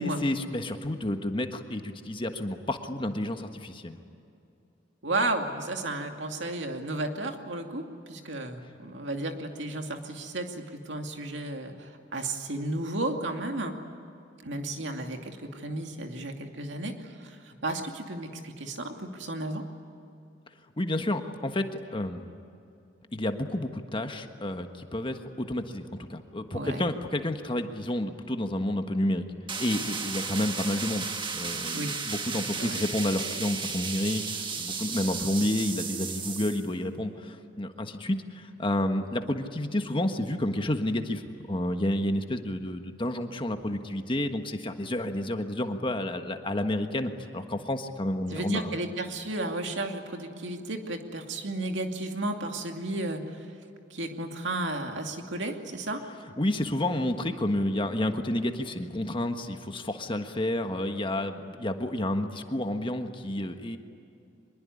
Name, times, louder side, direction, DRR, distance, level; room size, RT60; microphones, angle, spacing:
voice 1, 0.0-4.0 20.8-22.3 23.1-29.2 29.6-31.1 31.3-41.2 41.5-48.7 56.4-63.8, left 1 dB, 25° left, 6 dB, 1.5 m, -30 dB
voice 2, 5.0-13.7 14.4-19.6 26.5-26.8 31.7-31.9 32.6-32.8 48.3-53.5 53.9-56.0, right 2 dB, 70° right, 4 dB, 2.6 m, -33 dB
sound 1, 29.5-36.7, right 5 dB, 25° right, 1.5 m, -34 dB
24.5 x 22.0 x 9.9 m, 2.6 s
head